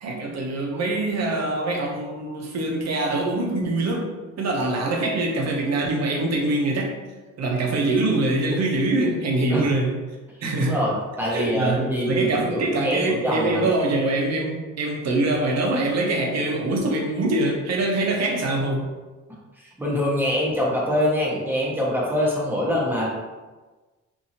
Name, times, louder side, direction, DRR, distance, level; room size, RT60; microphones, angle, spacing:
voice 1, 0.0-4.1 4.4-7.0 7.4-10.0 10.4-10.8 11.3-18.9, right 2 dB, 60° right, 0 dB, 0.7 m, -24 dB
voice 2, 10.6-13.7 19.8-23.1, left 1 dB, 5° right, -5 dB, 0.9 m, -24 dB
2.7 x 2.6 x 2.8 m, 1.3 s
cardioid pair, 90°, 30 cm